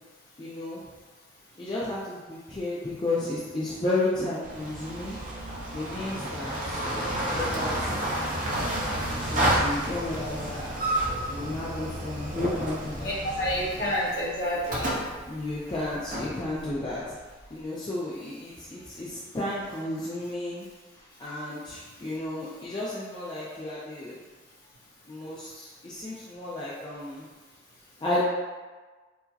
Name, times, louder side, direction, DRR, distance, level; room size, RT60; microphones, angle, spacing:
voice 1, 0.4-0.8 1.6-5.2 5.7-8.4 8.9-10.8 11.3-13.1 15.3-17.2 17.5-20.6 21.2-24.2 25.1-27.3 28.0-28.2, left 2 dB, 25° left, -8 dB, 0.4 m, -33 dB
sound 1, 4.4-17.4, right 1 dB, 40° right, 0.6 m, -31 dB
voice 2, 13.0-15.0 28.1-28.2, equal, 50° left, -8 dB, 1.1 m, -29 dB
4.6 x 2.0 x 2.7 m, 1.3 s
head